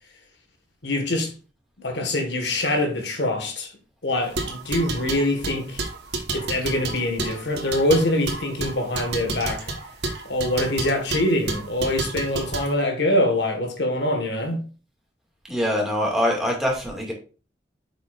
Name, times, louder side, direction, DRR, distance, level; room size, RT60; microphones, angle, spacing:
voice 1, 0.8-1.3 1.8-3.7 4.0-5.8 6.3-9.7 10.2-14.6, left 1 dB, 70° left, 1.6 m, -24 dB
sound 1, 4.2-12.7, right 2 dB, 65° right, 1.2 m, -31 dB
voice 2, 15.5-17.1, equal, ahead, 2.1 m, -23 dB
7.7 x 6.0 x 2.5 m
head